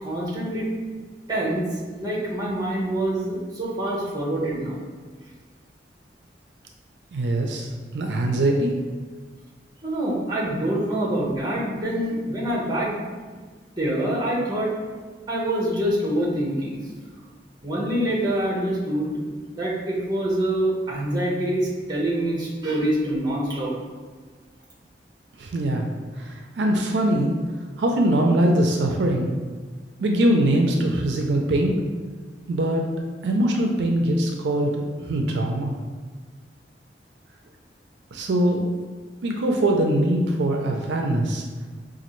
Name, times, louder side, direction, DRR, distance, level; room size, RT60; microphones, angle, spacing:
voice 1, 0.0-0.7 1.3-4.8 9.8-13.0 13.8-14.7 15.3-16.8 17.6-19.2 19.5-23.7, right 1 dB, 25° right, -3 dB, 0.9 m, -25 dB
voice 2, 7.1-8.8 25.4-25.9 26.2-27.4 27.8-29.3 30.0-31.8 32.5-32.9 33.2-35.8 38.1-38.7 39.2-41.4, right 1 dB, 80° right, 2 dB, 0.4 m, -22 dB
5.0 x 2.4 x 3.0 m, 1.5 s
head